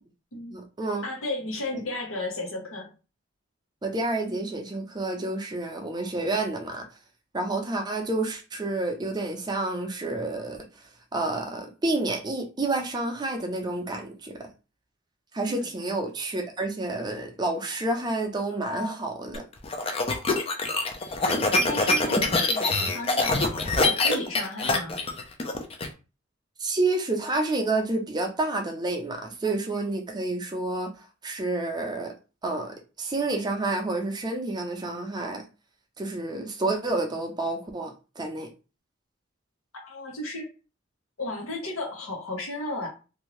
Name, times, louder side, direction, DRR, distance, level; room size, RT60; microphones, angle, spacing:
voice 1, 0.5-1.1 3.8-6.8 7.3-10.6 11.1-14.3 15.3-19.4 26.6-30.9 31.2-32.1 32.4-35.4 36.0-38.5, right 2 dB, 20° right, 0.5 m, -29 dB
voice 2, 1.0-2.9 15.5-15.7 21.3-25.0 39.8-40.5 41.2-42.9, left 2 dB, 85° left, 1.2 m, -34 dB
sound 1, 19.3-25.9, left 2 dB, 30° left, 0.4 m, -24 dB
2.7 x 2.6 x 3.1 m
head